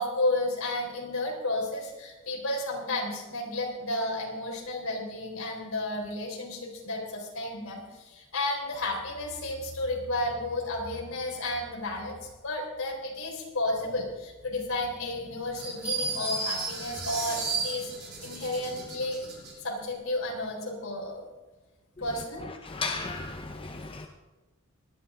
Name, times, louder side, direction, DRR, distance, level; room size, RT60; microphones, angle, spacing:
voice 1, 0.0-19.2 19.6-21.2 22.0-22.4, left 2 dB, 65° left, 3.8 m, -32 dB
sound 1, 15.6-19.5, right 3 dB, 50° right, 5.6 m, -34 dB
voice 2, 22.7-24.1, left 4 dB, 25° left, 0.7 m, -34 dB
19.0 x 12.5 x 3.8 m
head